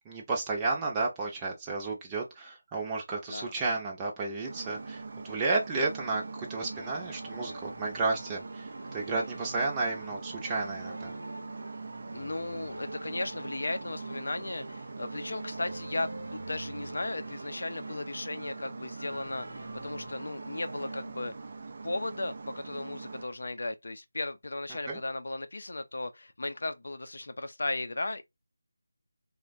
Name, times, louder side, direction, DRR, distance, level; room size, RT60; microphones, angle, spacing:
voice 1, 0.0-11.1 24.9-25.0, right 3 dB, 15° right, 0.7 m, -32 dB
sound 1, 4.4-23.2, right 4 dB, 40° right, 0.4 m, -42 dB
sound 2, 6.7-21.0, right 1 dB, 80° right, 0.8 m, -47 dB
voice 2, 12.1-21.3 21.8-28.2, left 2 dB, 60° left, 0.5 m, -36 dB
3.1 x 2.2 x 2.5 m
figure-of-eight pair, 160°, 0 cm